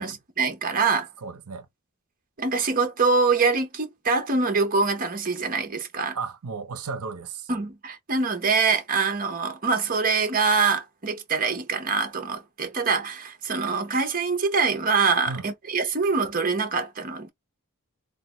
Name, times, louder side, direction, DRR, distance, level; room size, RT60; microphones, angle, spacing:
voice 1, 0.0-1.1 2.4-6.2 7.5-17.3, right 4 dB, 40° right, 0.8 m, -24 dB
voice 2, 1.2-1.7 6.1-7.5 15.3-15.5, right 4 dB, 80° right, 0.7 m, -34 dB
3.3 x 2.1 x 3.1 m
head